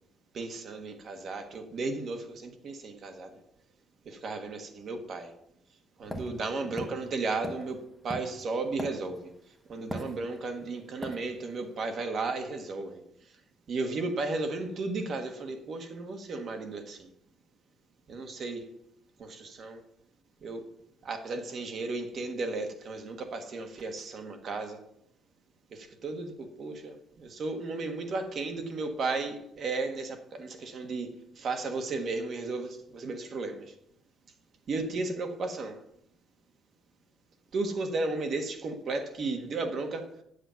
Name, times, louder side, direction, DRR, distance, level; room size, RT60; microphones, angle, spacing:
voice 1, 0.3-3.4 4.0-5.3 6.0-9.3 9.7-13.0 13.7-17.1 18.1-18.7 19.2-19.8 20.4-20.6 21.0-24.8 25.7-31.1 31.3-33.7 34.7-35.8 37.5-40.1, right 3 dB, 45° right, 1.4 m, -34 dB
sound 1, 6.1-9.4 9.9-10.6 11.0-11.2, right 1 dB, 5° right, 1.1 m, -39 dB
8.1 x 7.6 x 5.7 m
cardioid pair, 155°, 0 cm